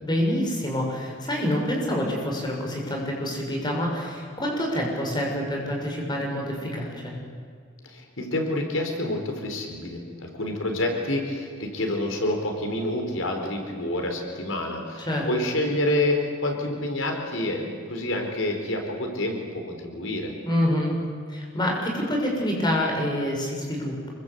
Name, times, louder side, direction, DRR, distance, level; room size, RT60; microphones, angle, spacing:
voice 1, 0.0-7.1 15.1-15.3 20.5-20.9 21.3-24.1, left 1 dB, 20° left, 0 dB, 6.2 m, -27 dB
voice 2, 7.8-20.3, left 1 dB, 85° left, 3 dB, 4.4 m, -28 dB
26.5 x 23.5 x 8.3 m, 2.1 s
head